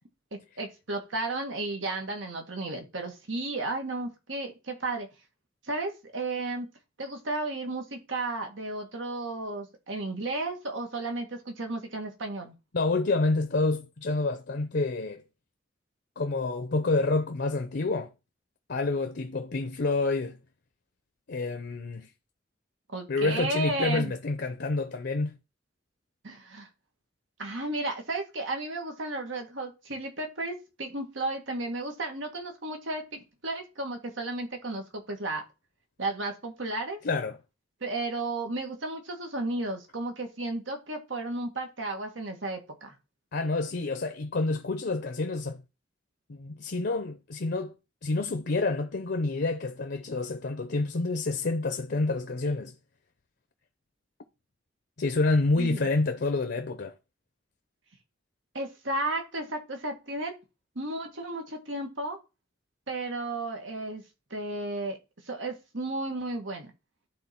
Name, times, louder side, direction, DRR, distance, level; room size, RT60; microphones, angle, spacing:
voice 1, 0.6-5.1 5.6-6.7 7.0-12.5 22.9-24.1 26.2-26.7 27.4-35.4 36.0-37.0 37.8-42.9 55.6-55.9 58.5-60.4 60.8-62.2 62.9-64.0 64.3-65.0 65.3-66.7, right 2 dB, 90° right, 1.8 m, -33 dB
voice 2, 12.7-15.2 16.2-18.1 18.7-20.4 21.3-22.1 23.1-25.4 37.0-37.4 43.3-45.6 46.3-47.7 48.0-52.7 55.0-56.9, left 3 dB, 60° left, 0.7 m, -28 dB
11.5 x 3.8 x 4.4 m
head